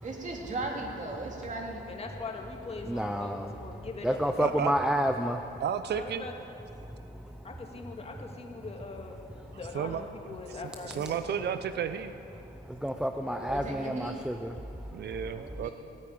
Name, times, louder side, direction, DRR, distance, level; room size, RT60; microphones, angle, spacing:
voice 1, 0.0-1.8 13.3-14.2 15.4-15.7, right 2 dB, 40° right, 0 dB, 2.9 m, -37 dB
voice 2, 1.9-4.8 5.9-6.3 7.4-9.2 9.5-11.5 13.8-13.9, left 3 dB, 30° left, 2 dB, 2.1 m, -42 dB
voice 3, 2.9-3.5 4.0-5.4 12.7-14.6, equal, 5° right, 5 dB, 0.6 m, -29 dB
voice 4, 4.4-4.7 5.6-6.3 9.7-10.0 10.8-12.1 14.9-15.7, right 8 dB, 55° right, 11 dB, 0.7 m, -32 dB
16.5 x 9.3 x 8.7 m, 3.0 s
cardioid pair, 90°, 20 cm